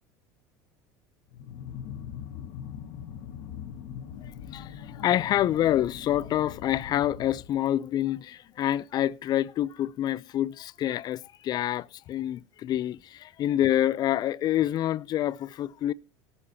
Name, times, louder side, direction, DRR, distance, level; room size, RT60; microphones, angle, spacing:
sound 1, 1.3-7.9, left 9 dB, 70° left, 1.2 m, -41 dB
voice 1, 4.2-15.9, left 12 dB, 45° left, 0.6 m, -27 dB
18.0 x 7.0 x 4.2 m
supercardioid pair, 110°, 10 cm